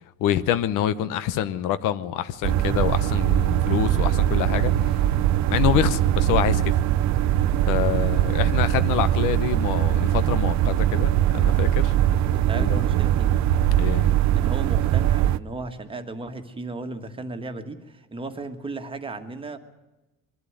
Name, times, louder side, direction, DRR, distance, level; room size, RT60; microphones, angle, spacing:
voice 1, 0.2-5.0 5.5-6.7 7.7-11.9 12.6-12.8 13.8-14.1, left 11 dB, 75° left, 1.1 m, -26 dB
sound 1, 2.4-15.4, right 12 dB, 60° right, 0.7 m, -21 dB
voice 2, 12.5-13.3 14.4-19.6, right 3 dB, 15° right, 1.6 m, -35 dB
23.5 x 12.5 x 9.4 m
cardioid pair, 150°, 32 cm